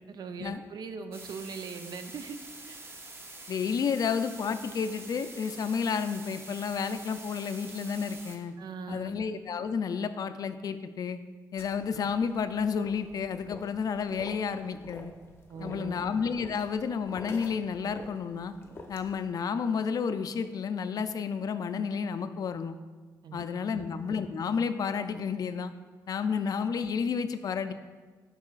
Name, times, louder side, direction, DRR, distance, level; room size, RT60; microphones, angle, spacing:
voice 1, 0.0-2.4 2.7-2.8 8.6-9.2 15.5-16.0 23.2-23.5 23.7-23.9, right 5 dB, 70° right, 8 dB, 0.5 m, -40 dB
sound 1, 1.1-8.4, right 2 dB, 35° right, 0.7 m, -46 dB
voice 2, 3.5-8.5 8.9-11.2 11.5-15.1 15.6-18.5 18.9-22.8 23.3-25.7 26.1-27.7, left 6 dB, 55° left, 10 dB, 0.4 m, -31 dB
sound 2, 11.6-19.3, left 2 dB, 35° left, 0.8 m, -48 dB
8.3 x 5.4 x 2.4 m, 1.4 s
cardioid pair, 85°, 7 cm